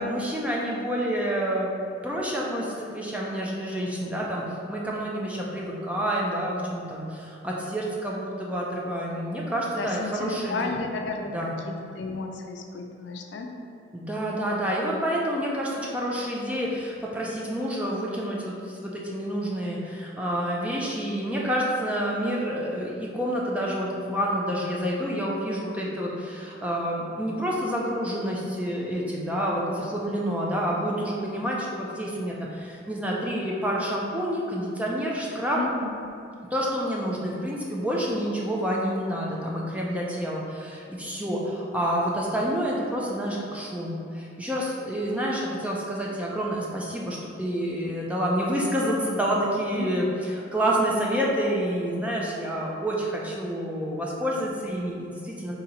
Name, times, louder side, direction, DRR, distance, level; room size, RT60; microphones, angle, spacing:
voice 1, 0.0-1.7 2.0-10.7 11.3-11.5 13.9-35.6 36.5-55.5, equal, 5° right, -4 dB, 0.4 m, -28 dB
voice 2, 9.8-11.3 11.6-13.5 35.3-36.1 49.7-49.9 51.4-51.5, left 3 dB, 65° left, 3 dB, 0.4 m, -33 dB
3.9 x 2.8 x 4.2 m, 2.5 s
head